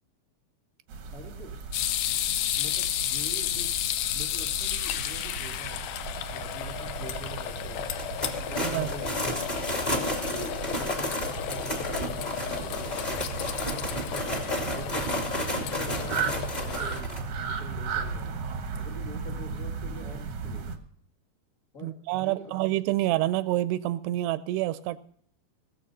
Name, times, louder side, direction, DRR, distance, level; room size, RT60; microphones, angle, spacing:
sound 1, 0.9-20.8, right 5 dB, 65° right, 1.5 m, -37 dB
voice 1, 1.1-1.5 2.6-3.8 4.1-5.9 6.3-7.9 8.5-9.1 9.9-13.2 14.0-14.3 14.7-15.2 15.5-17.2 17.4-18.4 18.7-20.8 21.7-22.6, equal, 30° left, 1 dB, 1.5 m, -44 dB
sound 2, 1.7-17.0, left 12 dB, 75° left, 2.3 m, -33 dB
sound 3, 8.0-17.2, left 1 dB, 15° left, 1.6 m, -32 dB
voice 2, 21.8-25.0, right 16 dB, 85° right, 14 dB, 2.7 m, -27 dB
19.5 x 7.4 x 5.4 m, 0.62 s
omnidirectional pair, 4.7 m